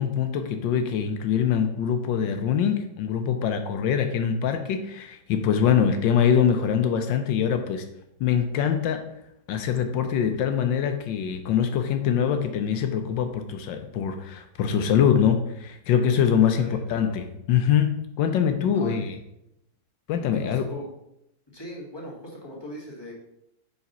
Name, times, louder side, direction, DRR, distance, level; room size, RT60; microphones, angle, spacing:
voice 1, 0.0-7.8 8.2-9.0 9.5-19.2 20.1-20.6, left 8 dB, 75° left, 7 dB, 1.2 m, -23 dB
voice 2, 16.6-17.1 18.8-19.2 20.3-20.9 21.5-23.1, left 1 dB, 15° left, -3 dB, 1.3 m, -39 dB
5.1 x 4.8 x 5.4 m, 0.82 s
omnidirectional pair, 2.2 m